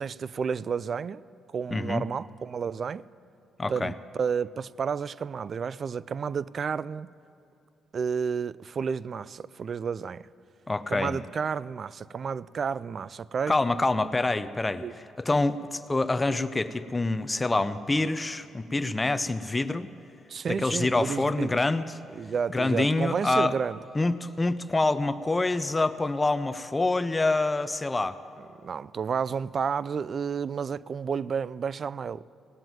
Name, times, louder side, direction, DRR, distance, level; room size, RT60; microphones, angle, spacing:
voice 1, 0.0-3.1 3.7-7.1 7.9-10.3 10.9-13.5 14.8-14.9 20.3-21.6 22.1-23.8 28.6-32.2, right 6 dB, 45° right, 0.3 m, -31 dB
voice 2, 1.7-2.0 3.6-3.9 10.7-11.2 13.5-14.8 15.2-19.9 20.5-21.8 22.5-23.5 23.9-28.2, left 2 dB, 20° left, 0.5 m, -26 dB
18.0 x 7.8 x 9.1 m
cardioid pair, 90°, 0 cm